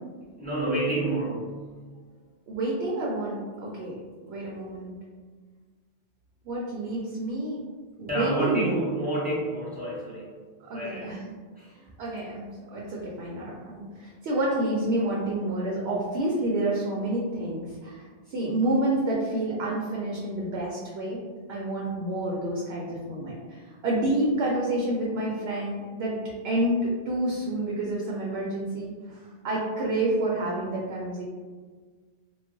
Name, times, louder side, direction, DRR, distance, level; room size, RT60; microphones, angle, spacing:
voice 1, 0.4-1.6 8.1-10.3 10.7-11.2 11.5-11.7, right 2 dB, 10° right, -9 dB, 1.0 m, -29 dB
voice 2, 2.5-4.0 4.3-4.9 6.5-7.6 8.0-8.8 10.7-11.2 12.0-21.2 21.5-26.2 26.4-31.2, right 1 dB, 75° right, -4 dB, 0.8 m, -29 dB
2.3 x 2.2 x 3.6 m, 1.5 s
omnidirectional pair, 1.1 m